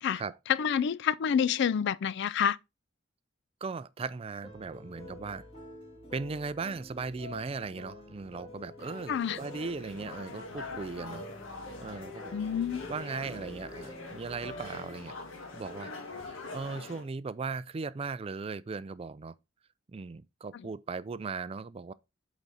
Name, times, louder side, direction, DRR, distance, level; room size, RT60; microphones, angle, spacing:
voice 1, 0.5-2.6 9.1-9.4 12.3-12.9, left 8 dB, 60° left, 0.3 m, -28 dB
voice 2, 3.6-5.5 6.1-11.2 11.8-12.4 12.9-15.2 15.5-15.9 16.2-19.3 19.9-21.9, right 4 dB, 30° right, 0.3 m, -38 dB
sound 1, 4.4-16.6, left 2 dB, 30° left, 2.3 m, -48 dB
sound 2, 8.8-17.1, left 3 dB, 75° left, 1.7 m, -44 dB
8.2 x 4.1 x 4.0 m
head